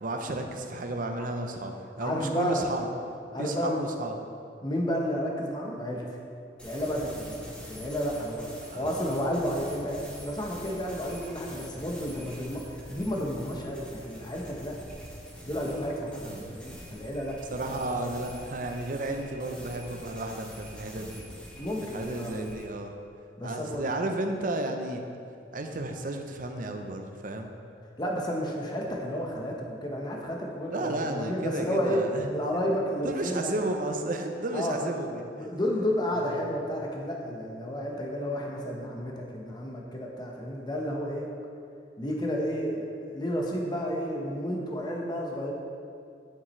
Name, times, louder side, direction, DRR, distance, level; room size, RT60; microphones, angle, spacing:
voice 1, 0.0-2.9 3.4-4.1 8.7-9.0 16.3-16.6 17.5-21.2 21.9-22.9 23.4-25.0 25.5-27.5 30.7-32.3 33.0-35.3 36.2-36.4, right 2 dB, 50° right, 5 dB, 0.6 m, -33 dB
voice 2, 2.0-2.6 3.3-3.8 4.6-6.2 6.6-7.4 7.6-8.5 8.7-14.8 15.4-17.4 21.6-22.3 23.4-23.8 28.0-33.5 34.5-34.9 35.3-41.3 42.0-45.5, equal, 25° left, -1 dB, 1.0 m, -31 dB
sound 1, 6.6-22.7, equal, 5° left, 1.1 m, -45 dB
9.1 x 7.2 x 3.2 m, 2.5 s
head